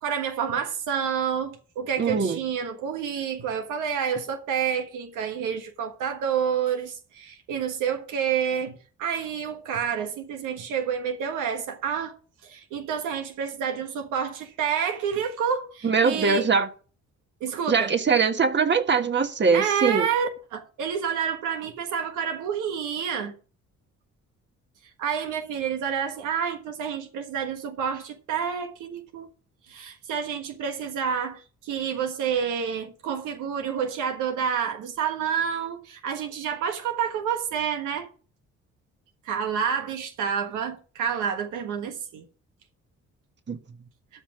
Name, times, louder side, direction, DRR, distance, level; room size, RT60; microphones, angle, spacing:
voice 1, 0.0-12.2 12.4-16.5 17.4-17.9 19.5-23.3 25.0-29.3 29.7-38.1 39.2-42.2, right 7 dB, 90° right, 1.4 m, -29 dB
voice 2, 2.0-2.4 15.8-16.7 17.7-20.1 43.5-43.6, right 5 dB, 35° right, 1.5 m, -22 dB
13.0 x 5.9 x 4.9 m
cardioid pair, 90°, 30 cm